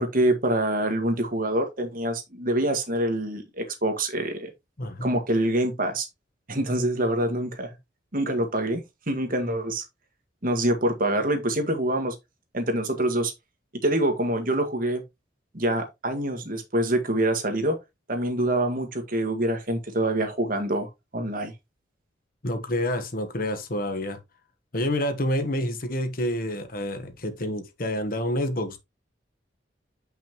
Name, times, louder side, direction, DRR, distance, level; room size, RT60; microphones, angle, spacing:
voice 1, 0.0-4.5 5.0-6.1 6.5-7.7 8.1-9.8 10.4-12.2 12.5-13.3 13.8-15.0 15.5-17.8 18.1-21.5, right 1 dB, 45° right, 1.6 m, -25 dB
voice 2, 4.8-5.1 22.4-24.2 24.7-28.8, left 1 dB, 50° left, 1.2 m, -28 dB
7.2 x 5.8 x 3.0 m
head